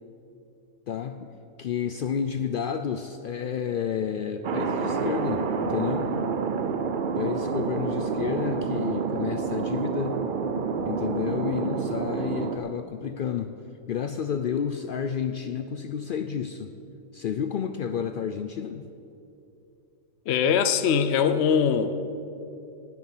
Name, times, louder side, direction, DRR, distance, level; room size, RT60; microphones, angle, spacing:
voice 1, 0.9-1.3 1.6-6.1 7.2-10.2 10.9-13.5 13.9-16.7 17.1-18.9, left 7 dB, 90° left, 8 dB, 0.4 m, -30 dB
Thunder, 4.4-12.6, right 5 dB, 50° right, 0.6 m, -28 dB
voice 2, 20.3-22.0, left 7 dB, 60° left, 10 dB, 0.8 m, -22 dB
18.0 x 6.2 x 7.2 m, 2.7 s
omnidirectional pair, 1.5 m